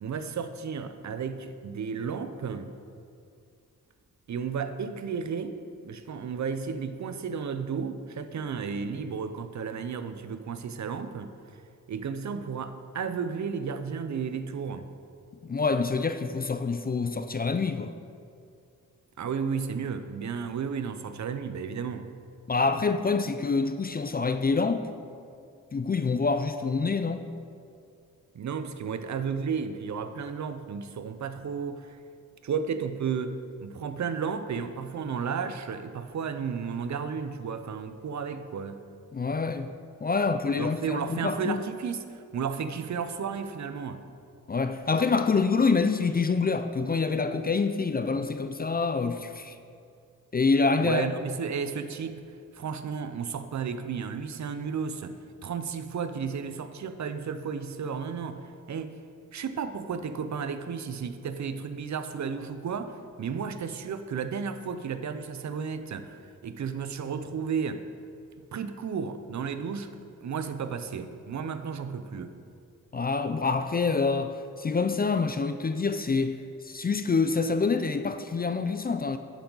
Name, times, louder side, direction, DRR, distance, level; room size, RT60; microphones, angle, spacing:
voice 1, 0.0-2.7 4.3-5.5 5.8-11.3 11.9-14.9 19.2-22.1 28.3-32.0 32.4-38.8 40.5-44.0 50.8-52.2 52.5-55.2 55.4-58.9 59.3-67.8 68.5-69.9 70.2-72.3, right 6 dB, 55° right, 10 dB, 0.6 m, -33 dB
voice 2, 15.4-17.9 22.5-24.9 25.7-27.2 39.1-39.7 40.0-41.6 44.5-49.6 50.3-51.1 72.9-76.4 76.6-79.2, left 4 dB, 30° left, 9 dB, 0.4 m, -26 dB
9.0 x 7.0 x 3.9 m, 2.3 s
cardioid pair, 75°, 34 cm